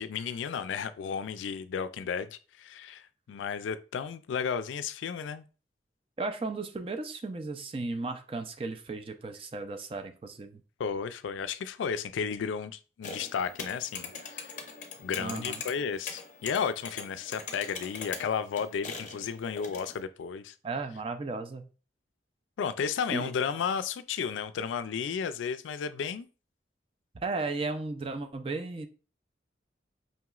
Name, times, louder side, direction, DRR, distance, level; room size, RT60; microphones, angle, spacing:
voice 1, 0.0-5.5 10.8-14.5 15.0-20.5 22.6-26.3, left 6 dB, 90° left, 0.3 m, -33 dB
voice 2, 6.2-10.6 15.2-15.6 20.6-21.7 23.1-23.3 27.1-28.9, right 3 dB, 30° right, 0.4 m, -35 dB
sound 1, 13.0-20.0, left 5 dB, 40° left, 0.6 m, -42 dB
5.3 x 2.9 x 2.3 m
head